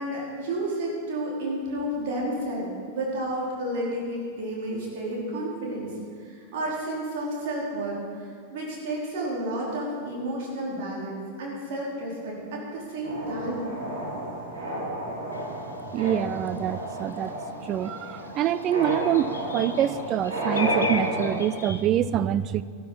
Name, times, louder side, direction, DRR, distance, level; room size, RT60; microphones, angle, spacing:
voice 1, 0.0-5.9 6.2-13.7, right 1 dB, 50° right, -4 dB, 4.6 m, -31 dB
sound 1, 13.0-21.3, equal, 65° right, 4.9 m, -32 dB
sound 2, 15.3-15.5 16.0-16.4 17.3-17.4 17.7-21.8, left 3 dB, 70° left, 1.0 m, -36 dB
voice 2, 15.9-17.3 17.6-22.6, right 11 dB, 35° right, 15 dB, 0.4 m, -26 dB
13.5 x 12.5 x 6.0 m, 2.1 s
figure-of-eight pair, 90°, 0 cm